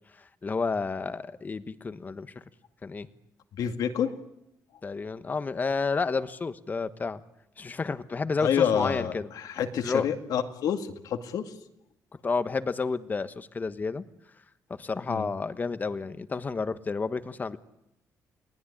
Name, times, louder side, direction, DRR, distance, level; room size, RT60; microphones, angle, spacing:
voice 1, 0.1-2.3 2.8-3.1 4.8-7.2 7.6-9.3 9.8-10.1 12.2-14.0 14.7-17.6, left 4 dB, 25° left, 12 dB, 1.2 m, -31 dB
voice 2, 3.6-4.1 8.4-11.5 15.1-15.3, left 8 dB, 80° left, 6 dB, 2.2 m, -28 dB
29.0 x 19.5 x 10.0 m, 0.86 s
cardioid pair, 130°, 6 cm